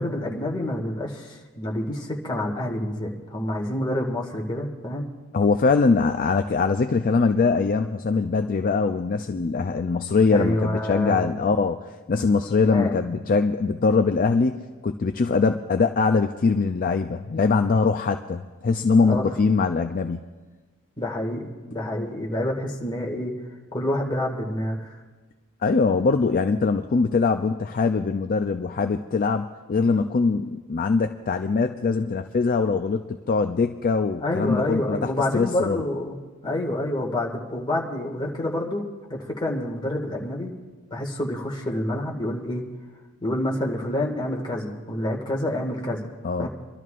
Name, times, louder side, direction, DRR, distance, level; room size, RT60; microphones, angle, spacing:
voice 1, 0.0-5.1 10.3-11.3 12.6-13.0 19.0-19.2 21.0-23.3 23.7-25.0 34.2-36.2 36.4-40.5 40.9-42.6 43.2-46.1 46.4-46.5, left 1 dB, 20° left, 0 dB, 1.9 m, -28 dB
voice 2, 5.3-11.8 12.1-20.2 25.6-35.8 46.2-46.5, left 4 dB, 40° left, 7 dB, 0.4 m, -22 dB
28.5 x 12.5 x 2.5 m, 1.3 s
head